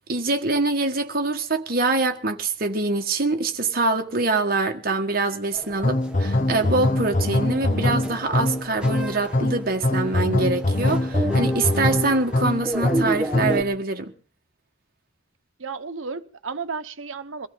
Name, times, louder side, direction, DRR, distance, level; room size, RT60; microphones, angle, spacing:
voice 1, 0.1-14.1, right 3 dB, 50° right, 1.7 m, -24 dB
sound 1, 5.5-13.6, right 1 dB, 5° right, 1.5 m, -32 dB
sound 2, 5.8-13.7, left 1 dB, 40° left, 0.9 m, -23 dB
voice 2, 15.6-17.5, right 4 dB, 85° right, 1.1 m, -33 dB
23.0 x 15.0 x 3.9 m
head